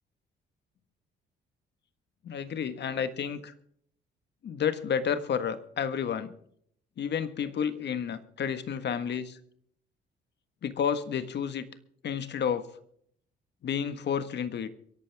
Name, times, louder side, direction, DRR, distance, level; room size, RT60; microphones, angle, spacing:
voice 1, 2.2-3.5 4.4-6.3 7.0-9.4 10.6-11.7 12.0-12.7 13.6-14.7, left 7 dB, 60° left, 11 dB, 1.5 m, -31 dB
23.5 x 11.5 x 3.5 m, 0.65 s
cardioid pair, 90°, 20 cm